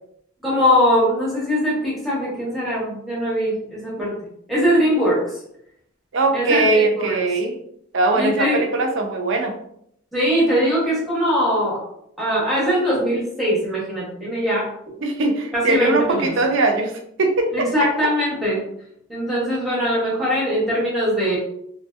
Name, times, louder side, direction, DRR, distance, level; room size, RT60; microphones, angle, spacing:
voice 1, 0.4-4.1 4.5-5.4 6.3-7.2 8.1-8.6 10.1-11.8 12.2-14.7 15.5-16.3 17.5-18.6 19.1-21.4, equal, ahead, -7 dB, 1.0 m, -21 dB
voice 2, 6.1-7.6 7.9-9.6 15.0-17.7, right 2 dB, 60° right, 4 dB, 0.5 m, -20 dB
3.0 x 2.7 x 2.4 m, 0.73 s
head